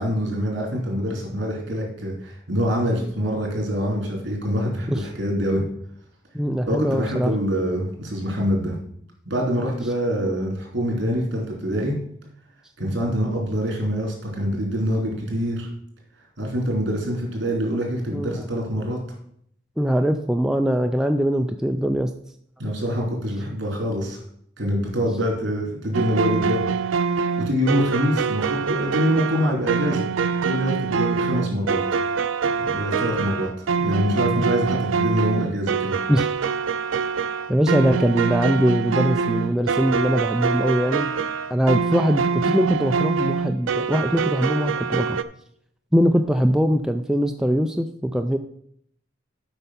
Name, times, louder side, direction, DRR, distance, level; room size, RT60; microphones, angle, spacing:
voice 1, 0.0-5.6 6.7-8.7 9.2-11.9 12.8-15.7 16.4-19.0 22.6-24.2 24.6-26.6 27.4-30.1 30.4-31.8 32.6-35.9, equal, 60° right, 0 dB, 3.3 m, -25 dB
voice 2, 6.3-7.3 18.1-18.4 19.8-22.1 36.1-36.3 37.5-41.1 41.5-45.2 45.9-48.4, equal, 5° right, 5 dB, 0.3 m, -21 dB
sound 1, 25.9-45.2, right 5 dB, 85° right, 0.5 m, -25 dB
7.9 x 5.5 x 5.7 m, 0.68 s
head